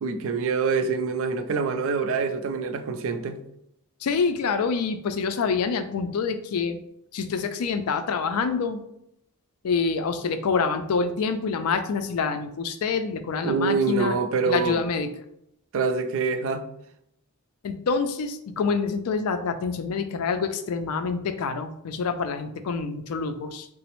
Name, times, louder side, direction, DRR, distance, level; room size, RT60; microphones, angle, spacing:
voice 1, 0.0-3.4 13.4-14.8 15.7-16.6, right 5 dB, 65° right, 0.4 m, -25 dB
voice 2, 4.0-6.8 7.1-8.8 9.6-14.1 14.4-15.1 17.6-23.7, left 5 dB, 75° left, 0.4 m, -26 dB
3.9 x 2.0 x 2.9 m
head